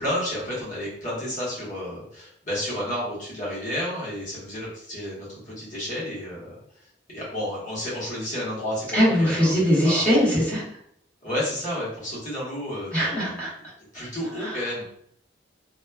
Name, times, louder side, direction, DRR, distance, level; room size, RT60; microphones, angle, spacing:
voice 1, 0.0-6.5 7.1-10.1 11.2-13.5 13.9-14.8, left 1 dB, 40° left, -7 dB, 1.1 m, -31 dB
voice 2, 8.9-10.6 12.9-13.5 14.4-14.6, equal, 10° left, -8 dB, 1.0 m, -21 dB
3.0 x 2.1 x 2.3 m, 0.69 s
head